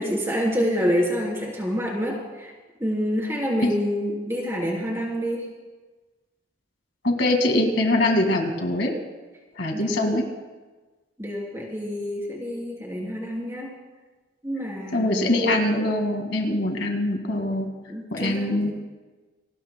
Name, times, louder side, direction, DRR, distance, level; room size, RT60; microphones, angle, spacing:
voice 1, 0.0-2.5 2.8-5.4 9.7-10.1 11.2-13.7 14.4-15.5 17.9-18.7, equal, 15° right, -2 dB, 3.2 m, -27 dB
voice 2, 7.0-8.9 9.6-10.2 14.9-17.7 18.1-18.7, left 1 dB, 65° left, 3 dB, 1.9 m, -23 dB
27.5 x 19.0 x 2.2 m, 1.3 s
head